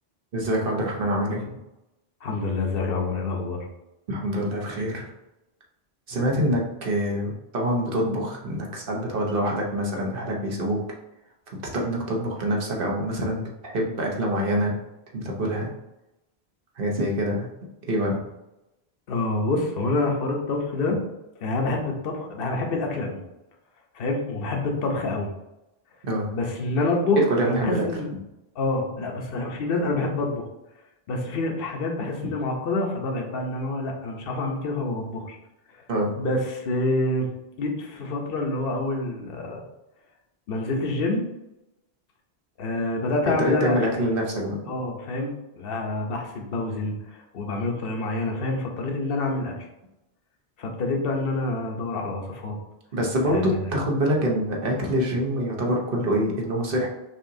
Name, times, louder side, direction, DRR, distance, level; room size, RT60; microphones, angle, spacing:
voice 1, 0.3-1.5 4.1-5.1 6.1-10.8 11.7-14.8 15.1-15.7 16.8-17.5 17.9-18.2 26.0-26.3 27.2-27.9 32.2-32.3 35.9-36.1 43.5-44.6 52.9-56.9, equal, 60° right, -1 dB, 1.0 m, -25 dB
voice 2, 2.2-3.7 19.1-21.0 21.4-23.2 23.9-25.3 26.3-28.1 28.5-30.5 31.1-35.4 35.7-35.8 36.2-37.3 37.6-39.6 40.5-41.2 42.6-43.8 44.7-49.5 50.6-52.6 53.2-53.6, left 2 dB, 65° left, 1 dB, 0.9 m, -27 dB
5.4 x 2.9 x 2.6 m, 0.94 s
omnidirectional pair, 1.1 m